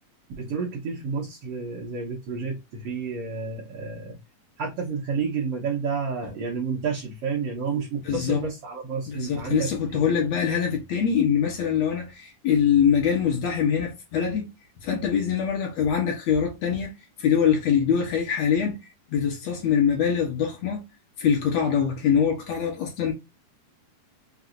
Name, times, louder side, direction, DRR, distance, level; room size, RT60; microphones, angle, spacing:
voice 1, 0.4-4.2 4.6-10.1, right 5 dB, 65° right, 1.6 m, -30 dB
voice 2, 8.0-8.4 9.1-14.5 14.8-16.9 17.2-18.8 19.1-20.8 21.2-23.1, left 7 dB, 65° left, 2.0 m, -23 dB
5.8 x 2.6 x 2.5 m
omnidirectional pair, 3.7 m